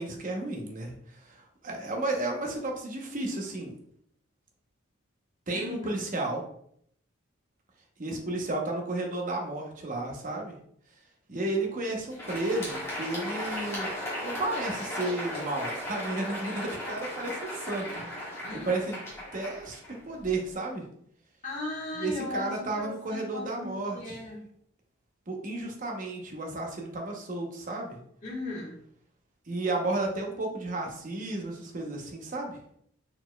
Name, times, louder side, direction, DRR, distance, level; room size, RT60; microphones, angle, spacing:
voice 1, 0.0-3.7 5.5-6.4 8.0-10.5 11.3-13.9 14.2-17.9 18.2-19.0 19.3-20.8 22.0-24.2 25.3-28.0 29.5-32.6, right 2 dB, 40° right, 1 dB, 0.8 m, -33 dB
voice 2, 5.5-6.0 18.4-18.8 21.4-24.4 28.2-28.8, left 2 dB, 35° left, -6 dB, 1.4 m, -37 dB
Crowd, 12.0-20.5, left 1 dB, 10° left, 1.5 m, -36 dB
4.3 x 4.2 x 2.2 m, 0.68 s
head